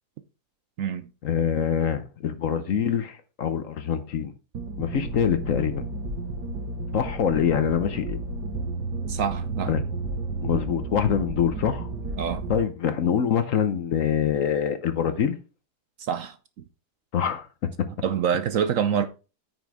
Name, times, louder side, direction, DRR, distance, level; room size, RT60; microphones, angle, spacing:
voice 1, 1.2-4.3 4.8-5.8 6.9-8.2 9.7-9.8 10.4-11.9 12.5-15.4 17.1-17.5, left 8 dB, 60° left, 1.1 m, -25 dB
sound 1, 4.5-12.6, right 3 dB, 85° right, 2.0 m, -32 dB
voice 2, 9.1-9.7 12.2-12.5 16.0-16.4 18.0-19.1, right 8 dB, 65° right, 0.9 m, -26 dB
9.1 x 6.2 x 3.5 m
omnidirectional pair, 1.7 m